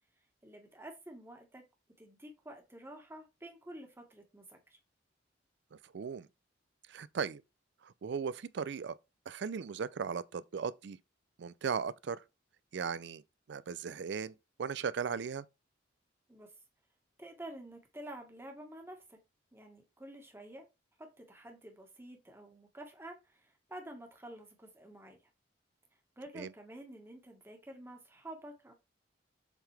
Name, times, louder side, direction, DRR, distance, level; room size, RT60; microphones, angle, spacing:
voice 1, 0.4-1.6 2.0-4.8 16.3-16.5 17.2-19.2 19.5-20.7 21.0-25.2 26.2-28.7, right 1 dB, 15° right, 1.5 m, -49 dB
voice 2, 5.7-6.3 6.9-7.4 7.8-9.0 9.3-11.0 11.4-12.2 12.7-13.2 13.5-15.4 26.3-26.5, right 6 dB, 65° right, 0.4 m, -37 dB
7.3 x 3.8 x 3.3 m
head